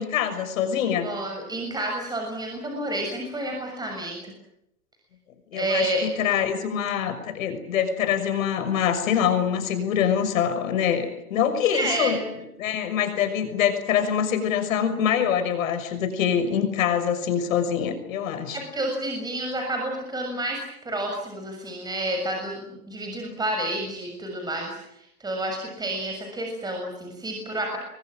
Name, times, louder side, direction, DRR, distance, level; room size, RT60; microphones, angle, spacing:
voice 1, 0.0-1.1 5.5-12.2 12.6-18.6, left 8 dB, 65° left, 8 dB, 6.3 m, -24 dB
voice 2, 1.0-4.3 5.5-6.1 11.7-12.3 18.5-27.8, right 1 dB, 10° right, 2 dB, 6.8 m, -30 dB
30.0 x 23.5 x 7.7 m, 0.82 s
hypercardioid pair, 125°, 44 cm